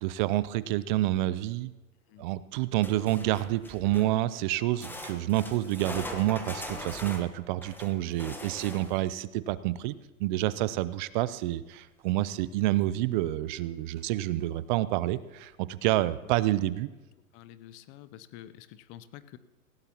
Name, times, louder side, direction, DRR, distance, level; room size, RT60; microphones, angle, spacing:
voice 1, 0.0-1.7 2.2-9.9 10.2-16.9, right 15 dB, 35° right, 17 dB, 0.5 m, -28 dB
sound 1, 2.8-4.2 4.8-9.1 12.3-12.4 12.8-12.9 13.6-13.7, left 1 dB, 5° left, 1.1 m, -41 dB
voice 2, 17.3-19.4, left 12 dB, 30° left, 15 dB, 0.6 m, -48 dB
18.5 x 16.0 x 3.0 m, 1.1 s
hypercardioid pair, 115°, 43 cm